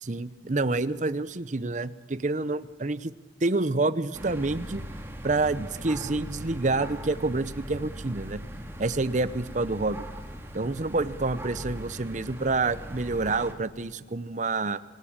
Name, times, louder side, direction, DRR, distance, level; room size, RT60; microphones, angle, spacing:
voice 1, 0.0-3.1 3.4-4.8 5.2-8.4 8.8-10.0 10.5-14.8, right 3 dB, 40° right, 15 dB, 0.8 m, -28 dB
sound 1, 4.1-13.5, equal, 15° right, 2.1 m, -40 dB
26.0 x 18.0 x 8.8 m, 1.4 s
head